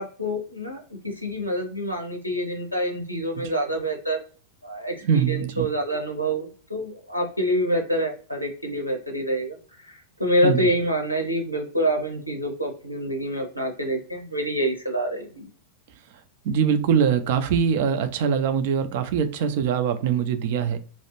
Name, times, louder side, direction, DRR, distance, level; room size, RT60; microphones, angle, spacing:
voice 1, 0.0-4.2 4.6-15.5, equal, 90° left, 0.6 m, -27 dB
voice 2, 5.0-5.7 10.4-10.7 16.4-20.8, right 7 dB, 50° right, 0.4 m, -23 dB
2.3 x 2.0 x 2.9 m
figure-of-eight pair, 90°, 0 cm